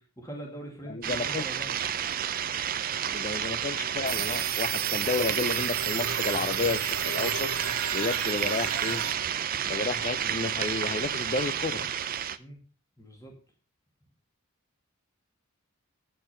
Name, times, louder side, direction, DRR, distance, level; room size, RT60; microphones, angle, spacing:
voice 1, 0.0-1.8 12.4-12.6 13.0-13.4, right 1 dB, 15° left, 0 dB, 2.3 m, -42 dB
voice 2, 0.9-1.5 3.1-7.5 7.9-9.0 9.6-11.9, left 4 dB, 35° left, 14 dB, 0.5 m, -31 dB
sound 1, 1.0-12.4, right 9 dB, 40° right, 0.5 m, -31 dB
sound 2, 4.1-9.1, right 8 dB, 90° right, 1.1 m, -33 dB
8.7 x 6.6 x 5.9 m, 0.36 s
head